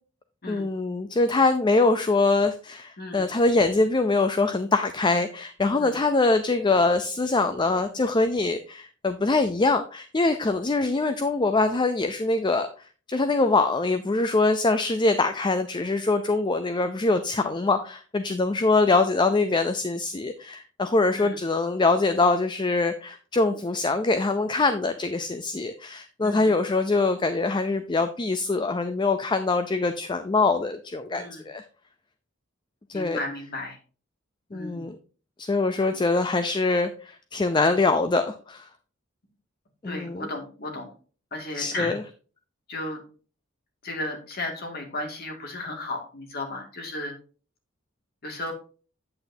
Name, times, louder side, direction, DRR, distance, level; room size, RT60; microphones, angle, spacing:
voice 1, 0.5-12.7 13.1-31.6 32.9-33.2 34.5-35.0 35.4-38.7 39.8-40.2 41.5-42.0, left 3 dB, 25° left, 9 dB, 0.5 m, -23 dB
voice 2, 26.2-26.6 31.2-31.4 32.9-33.8 34.5-34.9 39.8-40.9 41.3-42.0 42.7-43.0 43.8-47.1 48.2-48.5, left 2 dB, 50° left, 2 dB, 2.1 m, -34 dB
8.7 x 8.1 x 2.7 m, 0.38 s
head